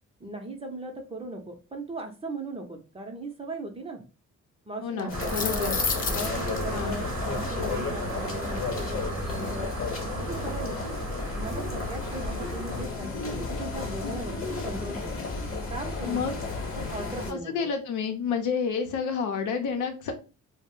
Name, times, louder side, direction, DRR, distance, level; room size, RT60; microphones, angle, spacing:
voice 1, 0.2-4.0 4.7-5.8 6.1-9.7 10.2-10.9 11.3-15.2 15.7-16.3 16.8-17.7, right 2 dB, 20° right, 4 dB, 0.6 m, -38 dB
voice 2, 4.8-5.8 6.7-7.0 16.1-16.4 17.3-20.1, left 6 dB, 80° left, 5 dB, 0.7 m, -29 dB
sound 1, 5.0-6.6, left 5 dB, 30° left, 0.4 m, -30 dB
sound 2, 5.1-17.3, left 3 dB, 45° left, 1.0 m, -33 dB
sound 3, 5.1-12.8, right 3 dB, 70° right, 0.7 m, -36 dB
2.4 x 2.1 x 3.6 m, 0.32 s
cardioid pair, 90°, 30 cm